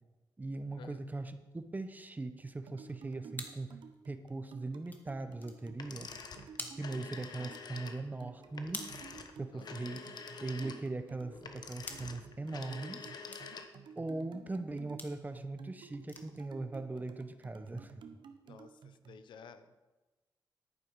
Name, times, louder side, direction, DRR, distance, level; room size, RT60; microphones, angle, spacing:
voice 1, 0.4-3.8 4.1-6.1 6.8-9.0 9.4-10.1 10.4-13.0 14.0-17.9, right 2 dB, 20° right, 9 dB, 0.9 m, -40 dB
sound 1, 1.6-12.9 13.3-13.5 13.9-14.3 15.0-15.2 15.6-15.7 16.0-16.4 16.7-17.0 17.4-17.5 17.8-17.9, left 2 dB, 20° left, 1.4 m, -51 dB
sound 2, 2.7-19.2, right 6 dB, 80° right, 0.9 m, -53 dB
sound 3, 5.7-13.9, left 5 dB, 60° left, 1.1 m, -47 dB
voice 2, 18.4-19.9, left 6 dB, 85° left, 10 dB, 0.8 m, -54 dB
11.0 x 9.0 x 4.7 m, 1.2 s
cardioid pair, 90°, 8 cm